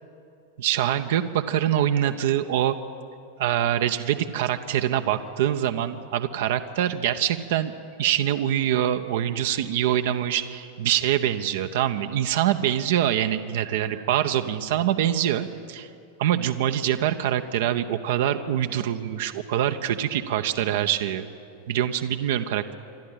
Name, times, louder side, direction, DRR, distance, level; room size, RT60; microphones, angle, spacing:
voice 1, 0.6-2.8 3.4-7.7 8.0-15.9 16.2-21.3 21.7-22.7, right 11 dB, 55° right, 8 dB, 0.7 m, -24 dB
27.5 x 12.0 x 9.0 m, 2.5 s
figure-of-eight pair, 90°, 0 cm